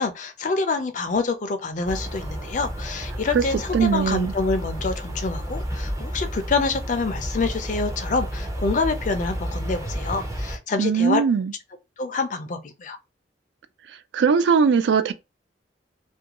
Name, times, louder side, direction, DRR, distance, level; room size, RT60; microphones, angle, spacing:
voice 1, 0.0-11.2 12.0-13.0, left 4 dB, 45° left, 0.4 m, -26 dB
sound 1, 1.8-10.6, equal, 20° right, 0.5 m, -31 dB
voice 2, 3.7-4.3 10.8-11.5 14.1-15.1, right 6 dB, 85° right, 0.3 m, -20 dB
2.4 x 2.2 x 2.8 m
head